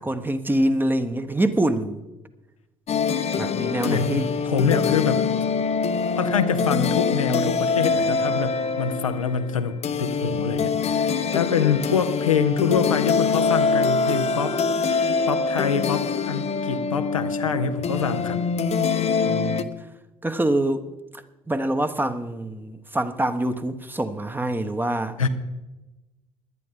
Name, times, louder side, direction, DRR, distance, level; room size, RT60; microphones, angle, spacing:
voice 1, 0.0-2.0 3.3-4.3 19.2-19.7 20.2-20.9 21.5-25.2, right 1 dB, 10° right, 1.1 m, -25 dB
sound 1, 2.9-19.6, left 5 dB, 40° left, 0.9 m, -24 dB
voice 2, 3.8-5.2 6.2-14.8 15.3-18.4 25.2-25.3, left 6 dB, 90° left, 0.8 m, -25 dB
17.5 x 11.5 x 3.8 m
figure-of-eight pair, 55°, 17 cm